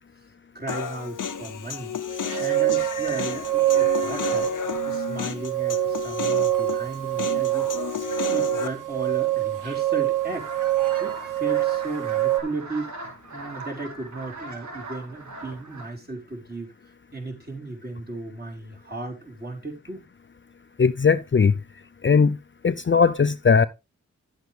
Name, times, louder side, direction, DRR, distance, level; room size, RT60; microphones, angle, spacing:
voice 1, 0.5-2.0 2.4-7.7 8.3-10.5 11.0-12.9 13.3-16.7 17.1-20.0, right 2 dB, 30° right, 3.9 m, -35 dB
Human voice, 0.7-8.7, left 7 dB, 90° left, 0.8 m, -32 dB
sound 1, 2.1-12.4, right 15 dB, 90° right, 1.3 m, -25 dB
sound 2, 10.2-15.9, right 2 dB, 70° right, 2.1 m, -40 dB
voice 2, 20.8-21.5 22.0-22.4 22.6-23.7, left 5 dB, 40° left, 0.5 m, -18 dB
10.5 x 7.9 x 3.3 m
cardioid pair, 55°, 30 cm